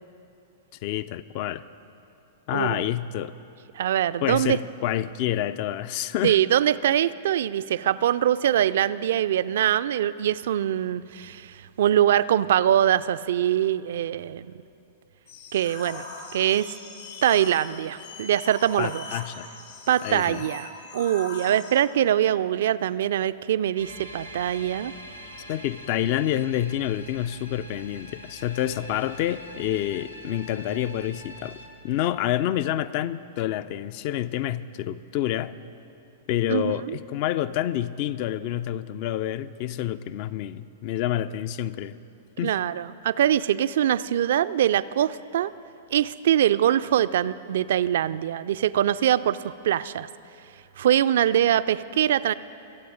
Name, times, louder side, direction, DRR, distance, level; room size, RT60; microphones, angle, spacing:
voice 1, 0.8-1.6 2.5-3.3 4.2-6.4 18.8-19.5 20.0-20.5 25.5-31.6 31.8-35.5 36.3-42.0 42.4-42.5, left 12 dB, 45° left, 15 dB, 0.4 m, -28 dB
voice 2, 2.5-2.9 3.8-4.6 6.2-14.5 15.5-16.0 16.3-16.7 17.2-19.1 19.9-24.9 36.5-37.0 42.4-45.5 45.9-50.1 50.8-52.3, right 11 dB, 55° right, 16 dB, 0.3 m, -23 dB
sound 1, 15.3-21.7, left 3 dB, 60° left, 2.9 m, -41 dB
sound 2, 23.8-31.7, equal, 90° left, 1.4 m, -44 dB
24.0 x 8.1 x 5.0 m, 2.7 s
figure-of-eight pair, 100°, 0 cm